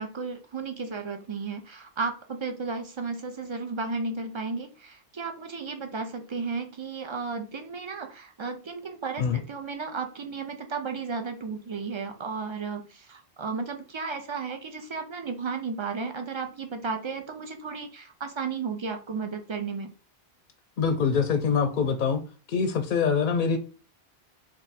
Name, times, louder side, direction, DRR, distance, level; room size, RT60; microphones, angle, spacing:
voice 1, 0.0-19.9, right 4 dB, 45° right, 6 dB, 0.4 m, -34 dB
voice 2, 20.8-22.2 22.5-23.6, left 6 dB, 55° left, 7 dB, 0.6 m, -24 dB
3.5 x 2.5 x 4.0 m, 0.36 s
omnidirectional pair, 1.1 m